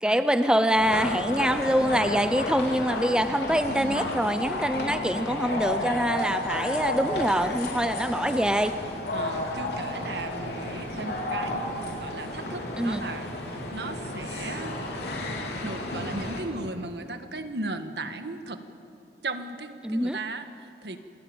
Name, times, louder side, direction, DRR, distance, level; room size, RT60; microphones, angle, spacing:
voice 1, 0.0-8.7 12.8-13.0 19.8-20.2, equal, 5° right, 10 dB, 0.6 m, -25 dB
sound 1, 0.7-16.4, left 1 dB, 70° left, 3.9 m, -32 dB
voice 2, 3.7-4.2 9.1-14.8 15.6-18.6 19.2-21.0, right 2 dB, 75° right, 8 dB, 1.6 m, -36 dB
27.5 x 19.0 x 8.9 m, 2.7 s
head